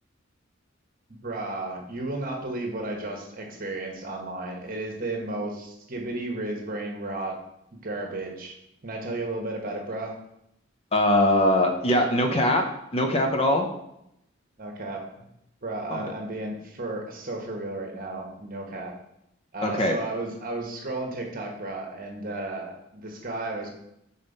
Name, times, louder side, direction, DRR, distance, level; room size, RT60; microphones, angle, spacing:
voice 1, 1.2-7.3 7.7-8.5 8.8-10.1 14.6-15.3 15.6-18.9 19.5-23.7, right 2 dB, 45° right, 2 dB, 1.2 m, -33 dB
voice 2, 10.9-12.6 12.9-13.7 15.9-16.1 19.6-19.9, left 1 dB, 30° left, 4 dB, 0.7 m, -22 dB
5.3 x 4.2 x 5.3 m, 0.80 s
head